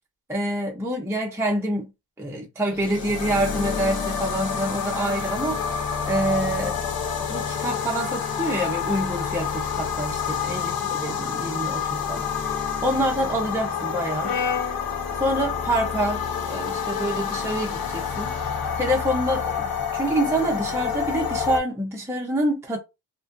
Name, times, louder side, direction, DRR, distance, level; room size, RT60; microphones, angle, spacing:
voice 1, 0.3-1.9 2.2-6.8 7.3-10.7 11.0-14.4 14.7-14.8 15.1-18.3 18.7-19.7 19.9-22.8, right 1 dB, 5° right, 0.6 m, -27 dB
sound 1, 2.7-21.6, left 7 dB, 55° left, 0.7 m, -28 dB
Brass instrument, 14.2-18.5, left 5 dB, 80° left, 1.1 m, -35 dB
2.5 x 2.3 x 2.5 m
cardioid pair, 80°, 43 cm